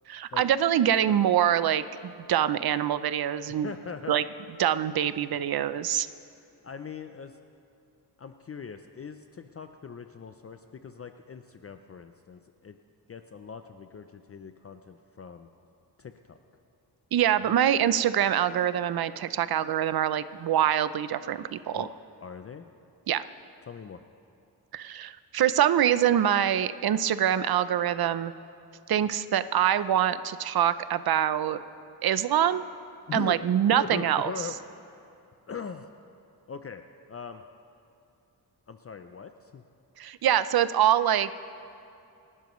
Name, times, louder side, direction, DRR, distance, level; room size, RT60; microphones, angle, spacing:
voice 1, 0.1-3.7 4.1-4.2 4.6-6.1 17.1-21.9 23.1-23.2 24.7-28.3 28.9-31.6 32.0-32.6 33.1-34.3 40.0-41.3, right 10 dB, 65° right, 14 dB, 0.6 m, -25 dB
voice 2, 3.6-4.2 6.6-7.4 8.2-12.8 13.1-15.5 16.0-16.4 17.4-17.6 21.7-21.9 22.2-22.7 23.6-24.0 33.1-33.4 33.7-34.6 35.5-35.9 36.5-36.8 37.1-37.4 38.7-39.6, left 6 dB, 35° left, 8 dB, 0.5 m, -40 dB
28.0 x 12.0 x 3.1 m, 2.6 s
wide cardioid pair, 110°, 40 cm